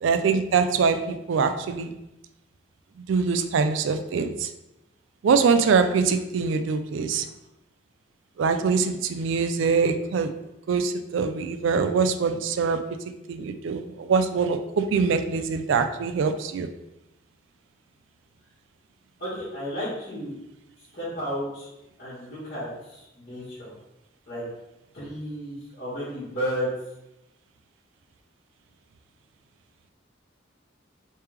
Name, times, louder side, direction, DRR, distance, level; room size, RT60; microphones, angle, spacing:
voice 1, 0.0-1.9 3.1-4.5 5.2-7.3 8.4-10.3 10.7-12.8 13.3-16.7, right 5 dB, 75° right, 8 dB, 0.3 m, -23 dB
voice 2, 19.2-20.4 20.9-21.7 22.0-23.7 24.3-24.5 24.9-26.7, equal, 45° left, -13 dB, 1.4 m, -33 dB
3.3 x 3.2 x 3.2 m, 0.90 s
head